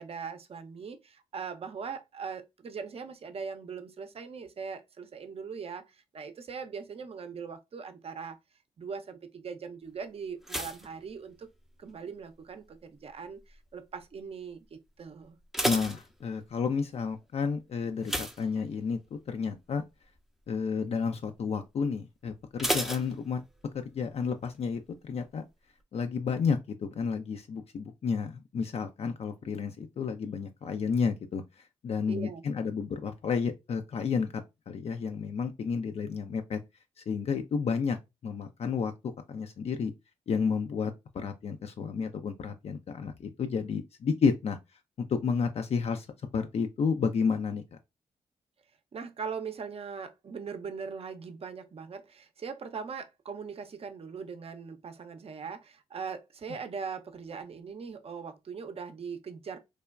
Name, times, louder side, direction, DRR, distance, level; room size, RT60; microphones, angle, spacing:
voice 1, 0.0-8.4 8.8-11.5 11.8-15.4 32.1-32.4 48.9-59.6, right 6 dB, 50° right, 0.6 m, -40 dB
sound 1, 10.4-11.9 12.2-12.7 13.3-13.7 14.0-14.1 14.5-14.6 15.2-16.7 18.0-19.2 19.5-19.8 20.2-20.3 22.6-23.8 24.1-24.2, equal, ahead, 0.5 m, -34 dB
voice 2, 15.6-19.8 20.5-23.4 23.8-25.4 25.9-31.4 31.8-36.6 37.1-38.9 39.3-39.9 40.3-44.6 45.0-46.1 46.3-47.6, left 5 dB, 50° left, 0.4 m, -31 dB
3.3 x 2.1 x 2.3 m
supercardioid pair, 50°, 13 cm